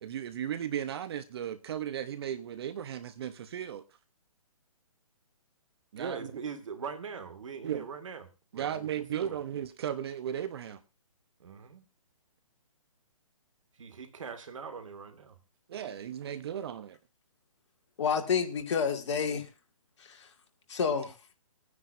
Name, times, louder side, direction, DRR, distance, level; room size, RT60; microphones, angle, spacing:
voice 1, 0.0-3.8 5.9-6.3 7.6-7.9 8.5-10.8 15.7-17.0, right 10 dB, 45° right, 1.0 m, -36 dB
voice 2, 6.0-8.3 8.5-8.9 9.1-9.4 11.4-11.8 13.8-15.4, right 6 dB, 60° right, 2.2 m, -41 dB
voice 3, 18.0-19.5 20.0-20.3 20.7-21.1, left 6 dB, 50° left, 2.3 m, -29 dB
22.0 x 9.6 x 2.7 m
figure-of-eight pair, 140°, 18 cm